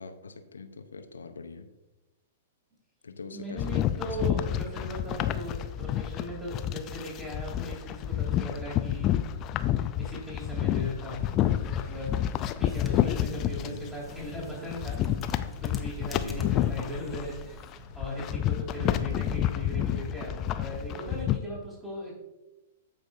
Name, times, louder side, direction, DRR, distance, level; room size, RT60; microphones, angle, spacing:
voice 1, 0.0-1.7 3.0-4.2 13.6-13.9 16.2-16.8 18.8-19.2, left 4 dB, 75° left, 9 dB, 0.7 m, -42 dB
voice 2, 3.3-9.1 9.5-12.2 12.6-15.0 15.6-22.2, equal, 15° right, -6 dB, 3.0 m, -38 dB
sound 1, 3.6-13.7 14.1-21.4, left 11 dB, 35° left, 0.4 m, -29 dB
Thunder / Rain, 11.1-19.9, left 1 dB, 75° right, 2.9 m, -50 dB
sound 2, 12.7-17.7, left 1 dB, 5° left, 1.0 m, -48 dB
14.5 x 5.0 x 2.7 m, 1.0 s
figure-of-eight pair, 105°, 0 cm